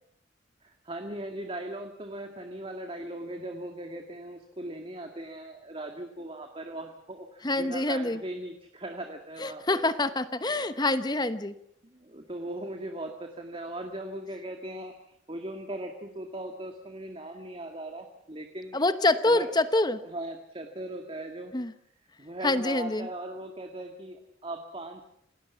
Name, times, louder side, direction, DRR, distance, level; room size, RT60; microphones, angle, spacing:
voice 1, 0.6-9.8 10.6-10.8 11.8-18.8 19.3-19.5 20.0-21.5 22.2-25.0, right 1 dB, 30° right, 5 dB, 1.9 m, -39 dB
voice 2, 7.4-8.2 9.4-11.5 18.7-20.0 21.5-21.7 22.4-23.1, left 2 dB, 20° left, 12 dB, 1.0 m, -26 dB
28.0 x 19.0 x 7.1 m, 0.73 s
head